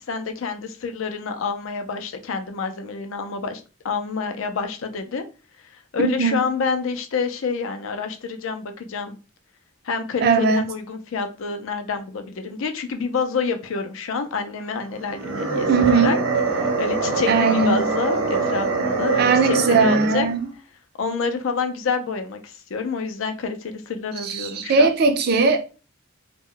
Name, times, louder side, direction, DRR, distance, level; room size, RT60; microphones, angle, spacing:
voice 1, 0.1-5.2 5.9-9.2 9.8-16.2 16.8-20.3 21.0-24.9, left 5 dB, 75° left, 0.4 m, -28 dB
voice 2, 10.2-10.6 15.7-16.2 17.3-17.8 19.2-20.4 24.3-25.6, right 4 dB, 50° right, 0.4 m, -18 dB
sound 1, 15.0-20.4, right 3 dB, 80° right, 0.8 m, -23 dB
2.2 x 2.0 x 3.6 m
head